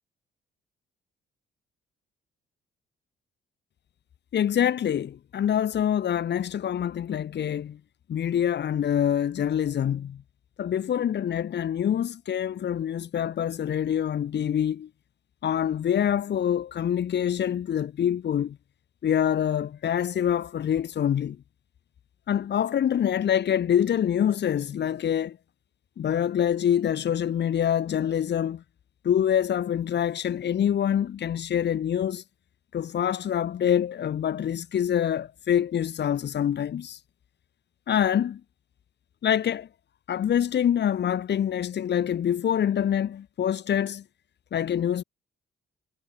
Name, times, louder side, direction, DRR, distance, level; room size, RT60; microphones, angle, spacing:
voice 1, 4.3-7.8 8.1-10.2 10.6-14.9 15.4-18.6 19.0-21.4 22.3-25.4 26.0-28.6 29.0-32.2 32.7-37.0 37.9-38.4 39.2-39.7 40.1-44.0 44.5-45.0, left 9 dB, 60° left, 2.8 m, -25 dB
cardioid pair, 90°, 20 cm